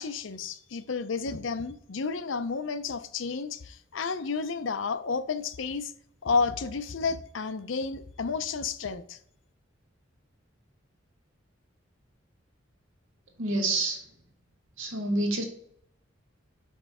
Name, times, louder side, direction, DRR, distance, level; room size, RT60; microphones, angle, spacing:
voice 1, 0.0-5.9 6.2-9.2, left 4 dB, 75° left, 0.6 m, -31 dB
voice 2, 13.4-14.0 14.8-15.4, right 2 dB, 85° right, 1.7 m, -28 dB
5.4 x 5.1 x 4.9 m
head